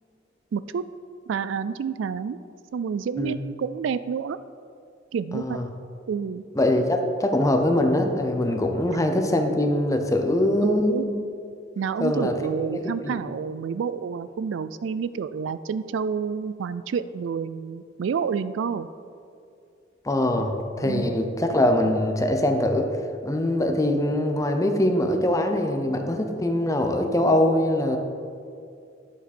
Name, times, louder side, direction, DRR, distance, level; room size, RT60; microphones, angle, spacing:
voice 1, 0.5-0.8 1.3-2.4 2.7-4.4 5.1-5.6 6.1-6.4 10.6-11.1 11.8-18.9 20.8-21.2, right 6 dB, 75° right, 14 dB, 0.3 m, -29 dB
voice 2, 5.3-5.7 6.5-11.2 12.0-12.3 12.7-13.2 20.0-22.9 23.2-28.0, left 1 dB, 15° left, 5 dB, 0.7 m, -23 dB
11.0 x 7.3 x 4.3 m, 2.4 s
head